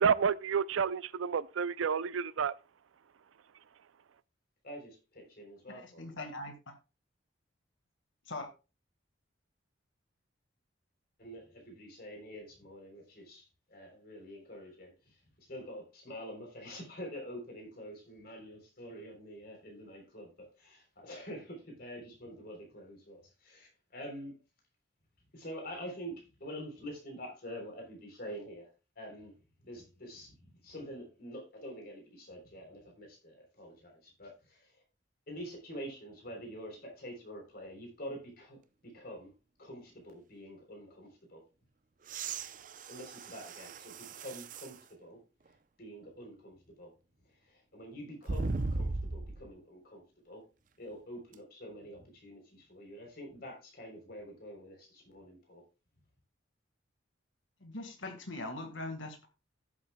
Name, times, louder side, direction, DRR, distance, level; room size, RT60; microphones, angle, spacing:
voice 1, 0.0-2.5, right 6 dB, 90° right, 0.4 m, -29 dB
voice 2, 4.6-6.0 11.2-24.3 25.3-28.7 29.0-29.3 29.6-34.8 35.3-39.3 39.6-41.4 42.8-45.2 45.8-46.9 47.3-50.4 50.8-55.6, equal, 50° left, 3.5 m, -47 dB
voice 3, 5.7-6.6 8.2-8.5 57.6-59.3, left 2 dB, 75° left, 1.7 m, -41 dB
sound 1, 42.0-44.8 45.5-45.6 48.3-49.5 51.3-51.4, right 3 dB, 40° right, 0.6 m, -37 dB
14.5 x 7.5 x 2.2 m
head